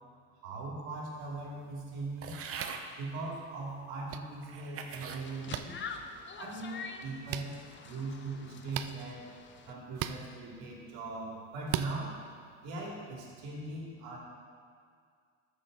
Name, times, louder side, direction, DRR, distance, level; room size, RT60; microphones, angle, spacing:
voice 1, 0.4-2.4 2.9-5.8 6.4-9.3 9.7-12.2 12.6-14.2, right 3 dB, 80° right, -3 dB, 2.7 m, -40 dB
sound 1, 2.2-2.9 3.7-3.8 4.4-5.2 5.8-6.2, right 6 dB, 40° right, 0.9 m, -42 dB
sound 2, 2.5-2.8 4.1-4.2 5.5-5.6 7.3-7.5 8.7-8.9 9.9-10.2 11.7-11.9, right 13 dB, 65° right, 0.6 m, -35 dB
sound 3, 4.9-9.7, left 5 dB, 30° left, 0.8 m, -46 dB
13.0 x 7.0 x 3.9 m, 2.2 s
cardioid pair, 110°, 35 cm